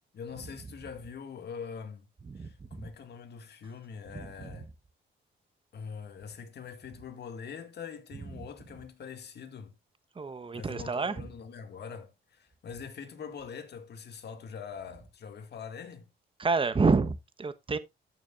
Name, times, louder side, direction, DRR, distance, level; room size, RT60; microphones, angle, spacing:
voice 1, 0.1-2.1 2.4-4.7 5.7-9.7 10.5-16.1, left 6 dB, 60° left, 2.1 m, -43 dB
voice 2, 4.1-4.5 10.2-11.2 16.4-17.8, right 4 dB, 25° right, 1.1 m, -28 dB
14.0 x 6.2 x 2.5 m
cardioid pair, 90°, 20 cm